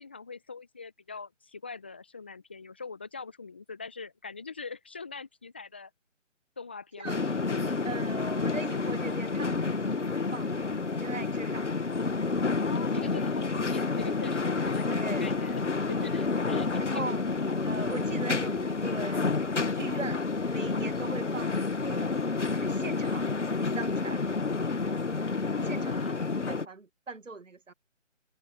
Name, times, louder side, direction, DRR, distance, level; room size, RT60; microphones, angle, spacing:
voice 1, 0.0-5.9 6.6-8.0 12.6-15.6 15.9-17.1 25.6-26.2, left 4 dB, 10° left, 0.9 m, -43 dB
sound 1, 7.0-26.6, left 4 dB, 65° left, 1.7 m, -29 dB
voice 2, 7.8-11.7 14.8-15.3 16.8-17.2 17.7-19.3 19.7-22.2 22.5-23.3 23.7-24.2 25.6-27.7, right 3 dB, 75° right, 1.6 m, -40 dB
figure-of-eight pair, 155°, 38 cm